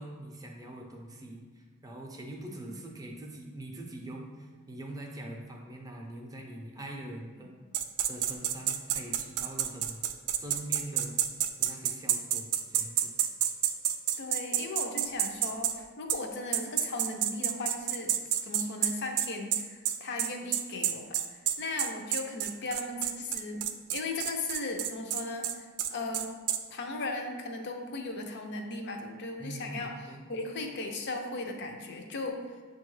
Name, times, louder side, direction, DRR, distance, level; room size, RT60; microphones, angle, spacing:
voice 1, 0.0-7.6 8.1-10.0 10.4-11.2 11.6-13.1 29.4-30.3, right 1 dB, 15° right, 0 dB, 0.5 m, -43 dB
sound 1, 7.7-15.8 16.1-16.2 16.5-26.6, right 11 dB, 90° right, 0.3 m, -29 dB
voice 2, 14.2-18.2 18.4-23.7 23.9-26.4 26.7-29.9 30.3-32.6, left 2 dB, 55° left, 3 dB, 0.5 m, -37 dB
6.7 x 2.3 x 3.2 m, 1.5 s
head